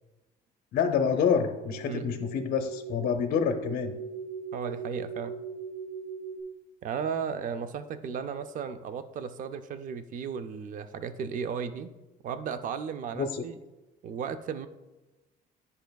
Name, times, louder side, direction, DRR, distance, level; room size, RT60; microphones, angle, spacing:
voice 1, 0.7-3.9 13.2-13.4, left 7 dB, 60° left, 5 dB, 0.6 m, -27 dB
sound 1, 0.8-6.4, right 5 dB, 80° right, 1.0 m, -40 dB
voice 2, 4.5-5.4 6.8-11.9 12.2-13.6 14.0-14.7, right 6 dB, 50° right, 11 dB, 0.5 m, -35 dB
10.5 x 5.5 x 2.3 m, 1.1 s
cardioid pair, 110°, 17 cm